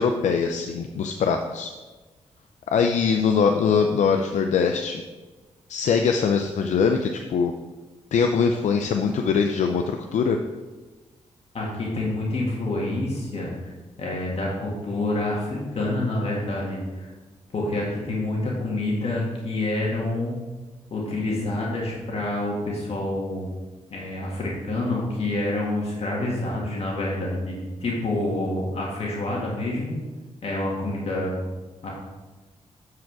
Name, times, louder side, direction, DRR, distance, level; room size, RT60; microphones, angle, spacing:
voice 1, 0.0-1.7 2.7-5.0 5.7-7.5 8.1-10.4, left 6 dB, 80° left, 5 dB, 0.5 m, -22 dB
voice 2, 11.5-13.7 14.0-17.1 17.5-20.3 20.9-23.5 23.9-30.0 30.4-31.4 31.8-31.9, left 2 dB, 55° left, -3 dB, 1.8 m, -27 dB
7.5 x 4.8 x 4.7 m, 1.2 s
cardioid pair, 80°, 12 cm